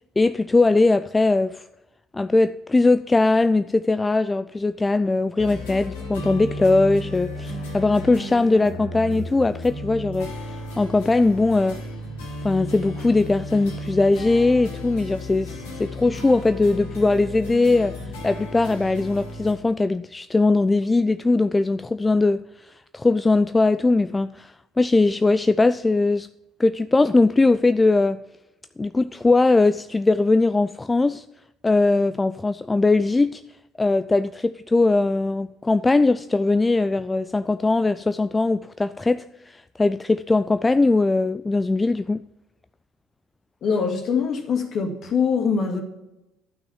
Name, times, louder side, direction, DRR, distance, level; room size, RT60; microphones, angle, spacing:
voice 1, 0.2-1.7 2.1-11.8 12.4-18.0 18.2-26.3 26.6-28.2 28.8-31.2 31.6-33.4 33.8-42.2, left 3 dB, 15° left, 0.3 m, -20 dB
sound 1, 5.4-19.5, left 1 dB, 70° left, 2.3 m, -34 dB
voice 2, 43.6-45.8, left 6 dB, 45° left, 2.1 m, -23 dB
12.0 x 6.1 x 7.2 m
figure-of-eight pair, 55°, 0 cm